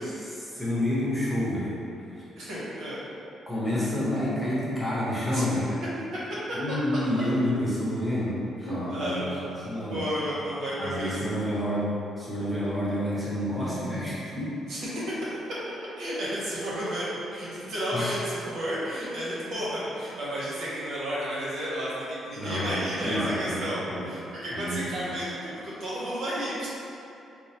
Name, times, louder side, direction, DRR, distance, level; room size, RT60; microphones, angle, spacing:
voice 1, 0.0-2.2 3.5-5.7 6.5-10.1 10.8-14.5 17.9-18.2 22.4-24.1 24.5-25.1, left 1 dB, ahead, -9 dB, 1.0 m, -29 dB
voice 2, 2.4-3.0 5.3-5.4 6.5-6.8 8.6-9.3 9.9-11.1 14.7-14.8 15.1-15.3 16.0-17.0 17.3-26.7, equal, 70° right, -8 dB, 1.0 m, -32 dB
4.6 x 2.0 x 2.9 m, 2.8 s
cardioid pair, 90°, 0 cm